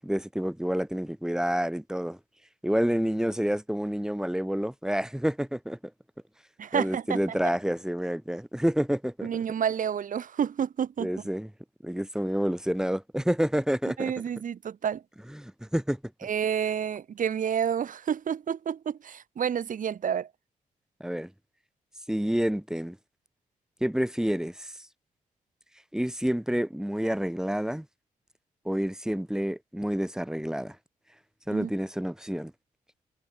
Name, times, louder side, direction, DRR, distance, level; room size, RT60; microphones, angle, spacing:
voice 1, 0.0-2.2 2.6-5.8 6.7-9.3 11.0-11.5 11.8-14.1 15.4-16.0 21.0-21.3 22.1-23.0 23.8-24.7 25.9-27.8 28.6-30.7 31.5-32.5, equal, 5° right, 1.5 m, -28 dB
voice 2, 6.6-7.5 9.2-11.3 14.0-15.0 16.2-20.3 31.5-31.7, right 8 dB, 65° right, 1.3 m, -29 dB
cardioid pair, 65°, 15 cm